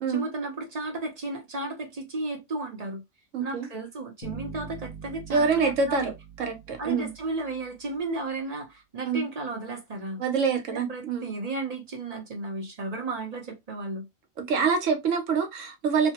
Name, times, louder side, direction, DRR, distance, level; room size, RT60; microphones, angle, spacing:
voice 1, 0.1-3.0 3.4-6.1 6.8-10.2 10.7-14.1, right 2 dB, 40° right, 0.5 m, -34 dB
voice 2, 3.3-3.7 5.3-6.1 6.4-7.1 9.1-9.2 10.2-11.4 14.5-16.1, right 5 dB, 65° right, 1.1 m, -26 dB
sound 1, 4.2-7.6, right 4 dB, 65° left, 1.4 m, -43 dB
3.1 x 2.2 x 2.8 m
omnidirectional pair, 1.5 m